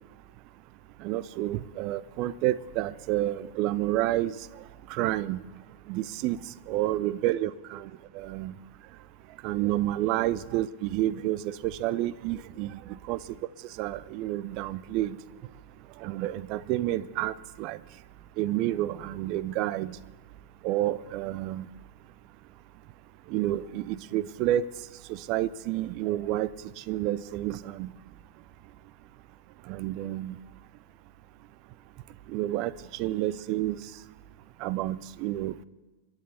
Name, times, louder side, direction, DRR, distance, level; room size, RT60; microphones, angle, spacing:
voice 1, 1.0-4.3 4.9-5.4 5.9-6.4 6.7-7.9 8.1-8.5 9.4-12.7 13.1-13.2 13.8-15.2 16.0-17.8 18.4-20.0 20.6-21.7 23.3-24.6 25.1-26.5 26.9-27.9 29.7-30.4 32.3-32.7 33.0-33.8 34.6-35.6, right 14 dB, 40° right, 19 dB, 0.5 m, -29 dB
25.0 x 10.5 x 4.3 m, 1.3 s
figure-of-eight pair, 90°, 0 cm